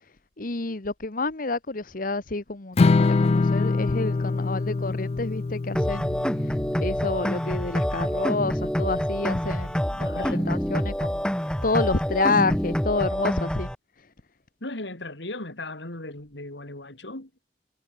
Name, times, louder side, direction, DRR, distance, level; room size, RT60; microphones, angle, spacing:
voice 1, 0.4-6.2 6.4-6.5 6.8-11.2 11.6-13.7, left 3 dB, 50° left, 1.3 m, -28 dB
Strum, 2.8-9.0, left 3 dB, 35° left, 0.4 m, -25 dB
sound 1, 5.8-13.8, equal, 5° left, 1.8 m, -27 dB
voice 2, 10.0-10.6 14.6-17.3, left 2 dB, 90° left, 3.8 m, -37 dB
head